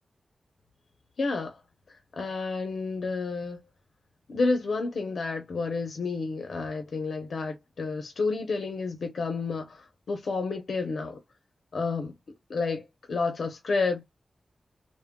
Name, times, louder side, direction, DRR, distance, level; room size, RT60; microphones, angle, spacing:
voice 1, 1.2-1.6 2.1-3.6 4.3-11.2 11.7-12.1 12.5-14.0, left 3 dB, 75° left, 0.7 m, -30 dB
3.5 x 2.2 x 2.2 m
wide cardioid pair, 145°, 0 cm